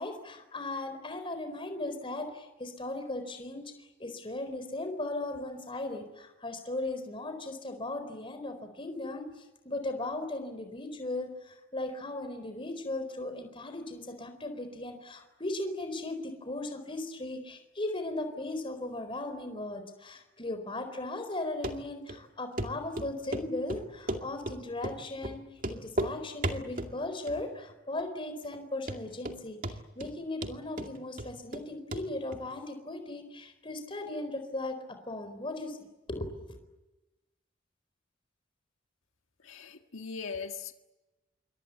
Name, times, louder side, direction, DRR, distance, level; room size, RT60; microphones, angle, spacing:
voice 1, 0.0-9.3 9.6-25.4 25.7-36.6, left 2 dB, 25° left, 4.2 m, -37 dB
Run, 21.6-21.7 22.1-22.2 22.6-22.7 23.0-23.4 23.7-24.6 24.8-25.0 25.2-25.3 25.6-26.1 26.4-26.9 27.3-27.7 28.0-28.1 28.5-28.6 28.9-29.4 29.6-30.1 30.4-31.6 31.9-32.0 32.3-32.4, right 1 dB, 45° right, 2.3 m, -34 dB
voice 2, 39.4-40.7, left 5 dB, 85° left, 1.7 m, -39 dB
27.5 x 24.0 x 8.4 m
head